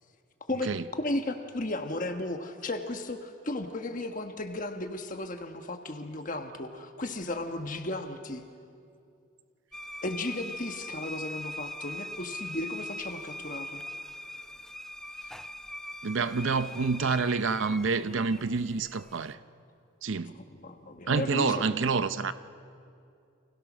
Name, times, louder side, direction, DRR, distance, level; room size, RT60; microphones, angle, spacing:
voice 1, 1.0-8.4 10.0-13.8 20.3-21.8, left 2 dB, 40° left, 1.3 m, -35 dB
sound 1, 9.7-19.3, left 1 dB, ahead, 0.6 m, -41 dB
voice 2, 16.0-19.4 20.0-20.3 21.1-22.3, right 4 dB, 65° right, 0.6 m, -28 dB
29.5 x 25.5 x 6.2 m
head